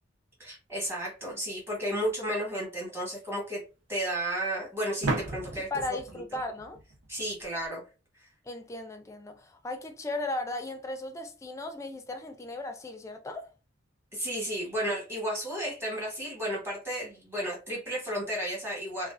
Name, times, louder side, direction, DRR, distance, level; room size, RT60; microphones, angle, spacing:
voice 1, 0.4-3.6 3.9-5.7 7.1-7.8 14.1-19.1, right 1 dB, 15° right, 1.1 m, -33 dB
sound 1, 2.0-2.1 5.0-7.7, right 2 dB, 90° right, 0.7 m, -35 dB
voice 2, 5.7-6.8 8.4-13.5, left 2 dB, 15° left, 0.4 m, -36 dB
2.4 x 2.3 x 2.4 m
head